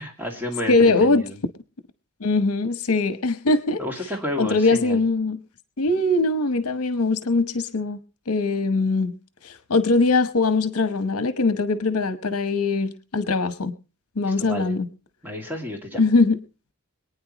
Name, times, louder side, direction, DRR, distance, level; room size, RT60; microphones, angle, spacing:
voice 1, 0.0-1.4 3.8-5.0 14.2-14.7 15.2-16.0, left 1 dB, 10° right, 1 dB, 2.4 m, -31 dB
voice 2, 0.7-1.2 2.2-3.8 4.4-5.4 5.8-8.0 8.3-9.1 9.4-13.7 14.2-14.9 16.0-16.4, left 3 dB, 70° left, 12 dB, 1.0 m, -21 dB
25.5 x 9.5 x 3.0 m, 0.32 s
head